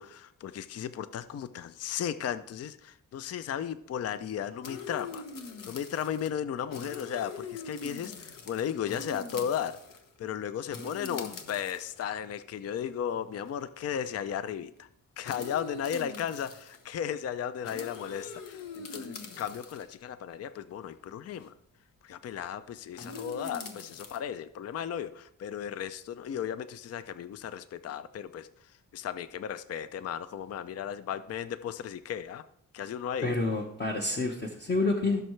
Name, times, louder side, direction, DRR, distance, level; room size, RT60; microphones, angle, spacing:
voice 1, 0.0-5.2 5.7-9.8 10.2-14.9 15.2-21.5 22.0-28.5 28.9-32.4 32.7-33.3, left 9 dB, 50° left, 13 dB, 0.4 m, -35 dB
sound 1, 4.6-6.3 6.6-10.1 10.7-12.0 12.8-12.9 13.5-13.6 13.8-14.1 15.2-16.9 17.6-20.0 21.3-21.5 22.9-24.2, left 4 dB, 75° left, 1.1 m, -43 dB
voice 2, 33.2-35.2, left 3 dB, 30° left, 1 dB, 1.0 m, -28 dB
15.5 x 6.5 x 3.2 m, 0.72 s
wide cardioid pair, 125°, 33 cm